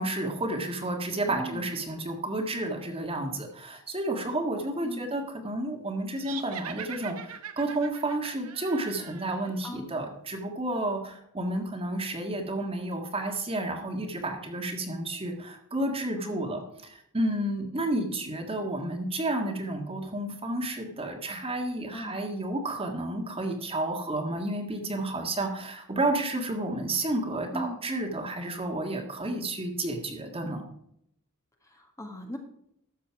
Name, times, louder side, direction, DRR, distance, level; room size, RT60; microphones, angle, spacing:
voice 1, 0.0-30.7, right 1 dB, 25° right, 3 dB, 1.8 m, -31 dB
voice 2, 1.2-1.7 4.8-5.0 9.6-9.9 16.2-16.7 21.9-22.1 27.5-27.8 31.6-32.4, equal, 15° left, 3 dB, 1.6 m, -38 dB
sound 1, 6.2-9.6, right 8 dB, 80° right, 1.0 m, -42 dB
13.0 x 7.1 x 4.7 m, 0.72 s
head